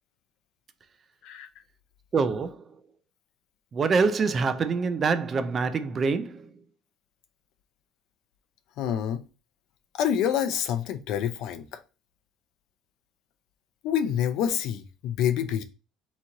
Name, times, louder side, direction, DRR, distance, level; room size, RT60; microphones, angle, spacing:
voice 1, 2.1-2.6 3.7-6.5, right 4 dB, 25° right, 0.4 m, -25 dB
voice 2, 8.8-9.2 9.9-11.8 13.8-15.6, left 9 dB, 55° left, 0.5 m, -27 dB
4.1 x 3.0 x 3.7 m
cardioid pair, 170°, 0 cm